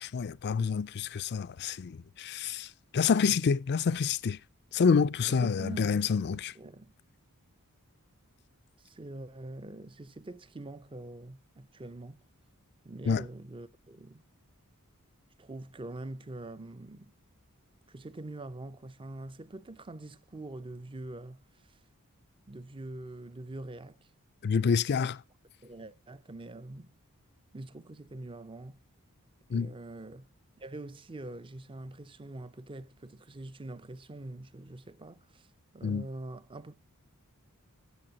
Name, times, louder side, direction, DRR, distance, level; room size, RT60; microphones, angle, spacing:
voice 1, 0.0-4.4 4.7-6.5 13.1-13.2 24.4-25.2 29.5-29.7 35.8-36.1, left 6 dB, 50° left, 0.4 m, -28 dB
voice 2, 5.3-6.9 8.8-12.2 12.8-14.2 15.4-17.1 17.9-21.8 22.5-24.1 24.9-25.1 25.6-26.9 27.5-28.8 29.5-30.3 30.6-35.5 35.7-36.8, right 2 dB, 25° right, 0.6 m, -44 dB
16.5 x 6.9 x 2.8 m
head